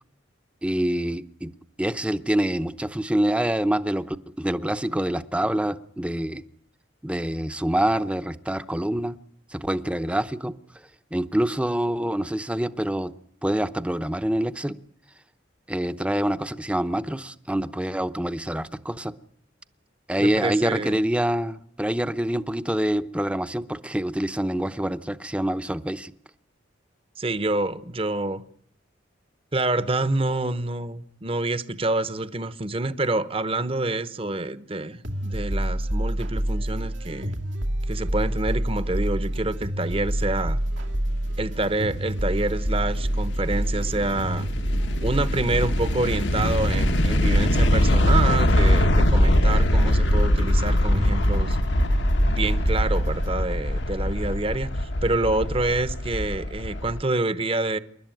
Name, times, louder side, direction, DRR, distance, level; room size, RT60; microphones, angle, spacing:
voice 1, 0.6-1.5 1.8-6.4 7.0-9.2 9.5-10.5 11.1-13.1 13.4-14.8 15.7-19.1 20.1-26.1, right 1 dB, 5° right, 0.8 m, -26 dB
voice 2, 20.2-21.0 27.2-28.4 29.5-37.4 37.9-40.6 41.4-44.5 45.0-51.6 52.3-57.8, right 2 dB, 30° right, 1.0 m, -27 dB
sound 1, 35.0-53.3, right 1 dB, 85° right, 2.4 m, -27 dB
sound 2, 41.5-57.0, left 1 dB, 70° left, 1.2 m, -23 dB
28.5 x 12.0 x 9.2 m
head